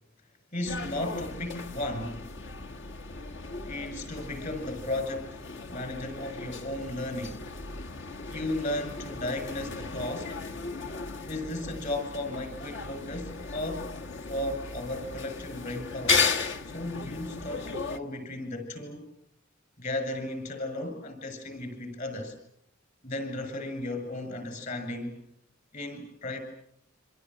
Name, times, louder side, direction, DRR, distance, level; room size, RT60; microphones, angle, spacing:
voice 1, 0.5-2.3 3.6-5.4 5.7-7.4 8.3-10.4 11.3-14.0 14.3-16.3 16.7-19.1 19.8-22.3 23.0-25.2 25.7-26.4, left 1 dB, 40° left, 7 dB, 7.1 m, -35 dB
sound 1, 0.6-18.0, left 4 dB, 65° left, 1.7 m, -35 dB
27.0 x 26.0 x 7.8 m, 0.73 s
head